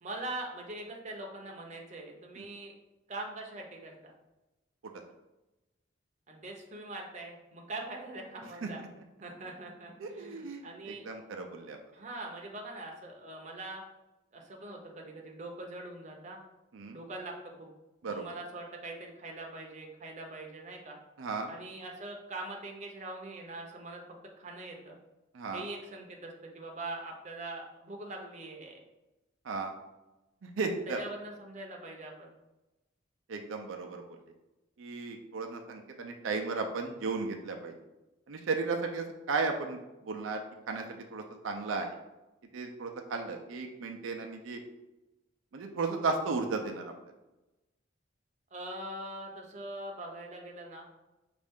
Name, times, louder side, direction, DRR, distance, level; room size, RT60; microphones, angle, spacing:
voice 1, 0.0-2.7 3.1-4.1 6.3-8.8 9.2-11.1 11.9-13.8 14.3-16.4 16.9-17.3 17.6-17.7 18.0-21.0 21.5-24.0 24.4-24.9 25.5-28.8 30.9-32.3 48.5-50.9, right 2 dB, 35° right, 1 dB, 0.7 m, -42 dB
voice 2, 10.0-11.8 16.7-17.0 18.0-18.2 21.2-21.5 25.3-25.6 29.4-29.7 30.4-31.0 33.3-34.0 34.8-37.7 38.3-39.8 40.0-40.8 41.1-42.0 42.5-44.6 45.5-46.9, right 4 dB, 80° right, 3 dB, 0.5 m, -35 dB
5.2 x 2.5 x 3.5 m, 1.0 s
head